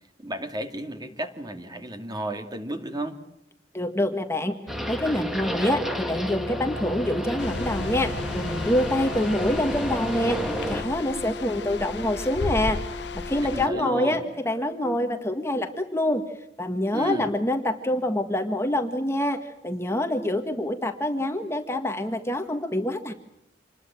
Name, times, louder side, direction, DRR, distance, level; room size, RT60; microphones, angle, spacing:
voice 1, 0.2-3.2 13.4-14.2 16.9-17.3, right 1 dB, 25° right, 6 dB, 2.6 m, -33 dB
voice 2, 3.7-4.5 4.9-10.4 10.7-12.8 13.1-16.2 16.6-23.1, left 1 dB, 15° left, 6 dB, 1.7 m, -26 dB
sound 1, 4.7-10.8, equal, ahead, 2.2 m, -31 dB
Brass instrument, 5.8-14.2, left 3 dB, 70° right, 3.7 m, -39 dB
sound 2, 7.4-13.7, left 3 dB, 70° left, 1.0 m, -35 dB
27.0 x 21.5 x 7.6 m, 0.82 s
head